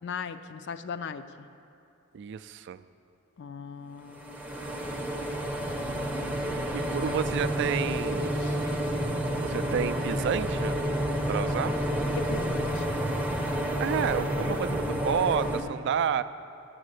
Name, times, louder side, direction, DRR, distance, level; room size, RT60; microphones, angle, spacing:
voice 1, 0.0-1.5 3.4-5.1 8.4-8.6 11.4-11.5 12.1-13.0, left 6 dB, 55° left, 12 dB, 0.4 m, -39 dB
voice 2, 2.1-2.8 6.7-8.3 9.4-10.8 11.3-11.7 13.8-16.2, right 7 dB, 55° right, 14 dB, 0.3 m, -30 dB
sound 1, 4.2-15.6, equal, 5° right, 0.6 m, -29 dB
8.2 x 7.6 x 8.0 m, 2.6 s
head